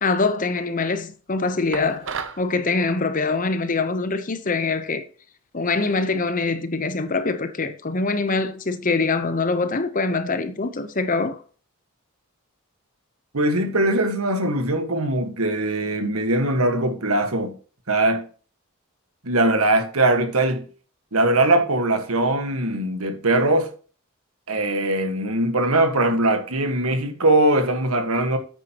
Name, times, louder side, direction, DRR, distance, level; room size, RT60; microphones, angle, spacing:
voice 1, 0.0-2.1 2.4-5.0 5.5-11.4, left 3 dB, 40° left, 0.9 m, -24 dB
sound 1, 1.7-2.5, right 6 dB, 60° right, 0.8 m, -32 dB
voice 2, 13.3-17.6 17.9-18.2 19.2-20.6 21.1-23.7 24.5-28.4, right 2 dB, 80° right, 1.6 m, -21 dB
9.1 x 9.0 x 3.0 m
head